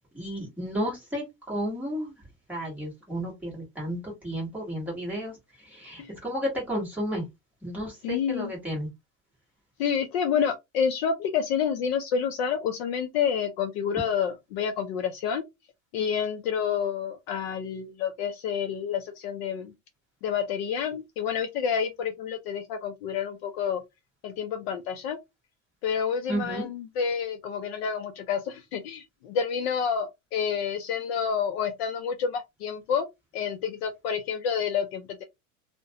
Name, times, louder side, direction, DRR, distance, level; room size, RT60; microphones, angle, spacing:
voice 1, 0.1-2.1 2.5-7.2 7.6-8.9 26.3-26.7, equal, 5° right, 1.0 m, -32 dB
voice 2, 8.0-8.5 9.8-15.4 15.9-19.7 20.2-23.8 24.2-25.2 25.8-33.1 33.3-35.2, left 7 dB, 50° left, 0.4 m, -29 dB
2.4 x 2.1 x 2.7 m
supercardioid pair, 165°, 41 cm